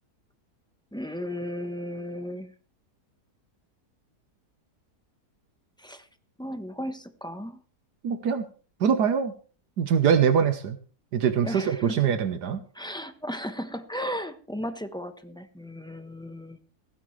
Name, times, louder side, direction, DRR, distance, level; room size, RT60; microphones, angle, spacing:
voice 1, 0.9-2.5 5.8-6.1 6.4-7.6 11.4-12.0 12.7-16.6, equal, 5° left, 8 dB, 0.8 m, -35 dB
voice 2, 8.0-8.5 8.8-9.3 9.8-10.8 11.1-12.6, right 7 dB, 85° right, 9 dB, 1.6 m, -23 dB
16.5 x 15.0 x 3.3 m, 0.39 s
omnidirectional pair, 1.7 m